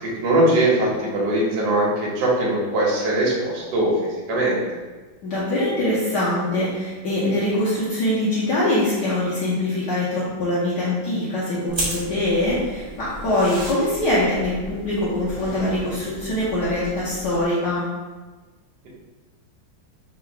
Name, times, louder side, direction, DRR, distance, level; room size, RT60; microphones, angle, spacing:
voice 1, 0.0-4.6, right 1 dB, 60° right, -4 dB, 1.3 m, -21 dB
voice 2, 5.2-17.9, left 1 dB, 60° left, -9 dB, 1.3 m, -23 dB
sound 1, 11.7-17.5, right 1 dB, 25° right, 0.6 m, -34 dB
3.8 x 2.3 x 4.4 m, 1.3 s
omnidirectional pair, 2.3 m